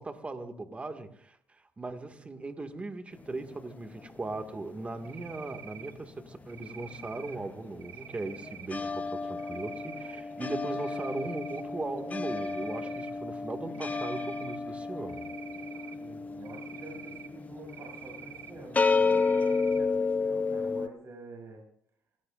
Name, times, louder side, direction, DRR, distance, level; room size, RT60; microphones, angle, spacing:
voice 1, 0.0-15.3, right 2 dB, 25° right, 5 dB, 2.1 m, -38 dB
sound 1, 3.2-5.8 6.1-20.9, left 4 dB, 25° left, 0.8 m, -32 dB
Cricket, 5.0-5.9 6.5-7.4 7.8-8.7 9.4-10.2 10.6-11.6 12.0-13.1 13.7-14.6 15.1-16.0 16.5-17.3 17.7-18.5 19.0-19.8, right 9 dB, 70° right, 1.6 m, -47 dB
voice 2, 16.0-21.6, right 3 dB, 50° right, -1 dB, 7.4 m, -48 dB
28.0 x 18.0 x 2.6 m, 0.68 s
cardioid pair, 80°, 5 cm